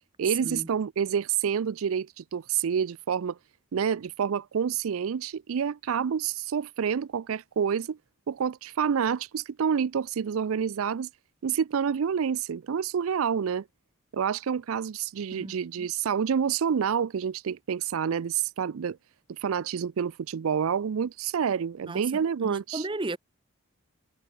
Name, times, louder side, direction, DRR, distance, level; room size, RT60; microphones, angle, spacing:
voice 1, 0.2-3.4 3.7-8.0 8.3-11.1 11.4-13.6 14.1-19.0 19.4-22.9, right 7 dB, 85° right, 0.4 m, -28 dB
voice 2, 15.3-15.9 21.9-23.2, right 2 dB, 25° right, 0.7 m, -36 dB
head